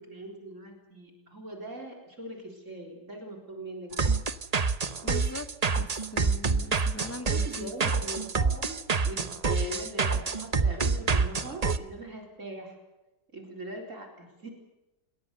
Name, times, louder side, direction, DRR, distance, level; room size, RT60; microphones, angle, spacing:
voice 1, 0.0-4.1 7.3-12.8 13.3-14.5, right 1 dB, 50° right, 3 dB, 4.7 m, -41 dB
sound 1, 3.9-11.8, right 4 dB, 30° right, 0.8 m, -27 dB
voice 2, 5.0-5.5 5.7-7.7, left 2 dB, 10° left, 10 dB, 1.0 m, -41 dB
27.5 x 22.0 x 6.8 m, 1.0 s
omnidirectional pair, 1.7 m